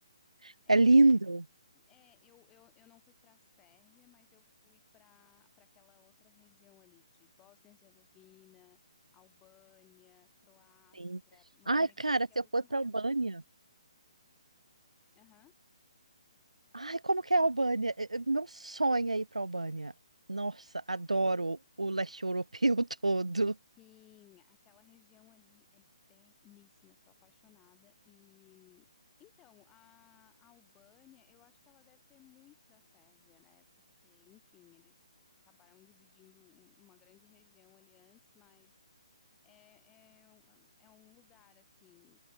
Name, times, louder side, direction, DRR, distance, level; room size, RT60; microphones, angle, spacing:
voice 1, 0.4-1.5 11.0-11.2 11.7-13.4 16.7-19.9 20.3-23.6, right 2 dB, 90° right, 0.4 m, -28 dB
voice 2, 1.7-8.8 9.1-12.9 15.1-15.5 23.8-28.9 29.2-33.6 34.0-34.9 35.4-38.7 39.4-42.2, left 14 dB, 20° left, 3.4 m, -64 dB
open air
figure-of-eight pair, 135°, 3 cm